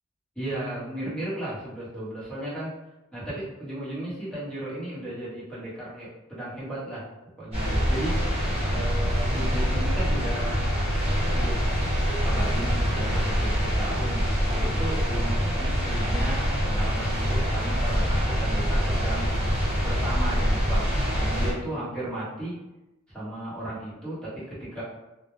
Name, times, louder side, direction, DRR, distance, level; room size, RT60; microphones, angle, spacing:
voice 1, 0.4-2.8 3.1-7.1 7.4-8.3 8.7-10.6 11.3-11.6 12.2-19.4 19.8-22.5 23.1-24.8, right 1 dB, 5° left, -9 dB, 0.9 m, -35 dB
sound 1, 7.5-21.5, equal, 25° right, 0.9 m, -25 dB
2.1 x 2.1 x 3.0 m, 0.97 s
head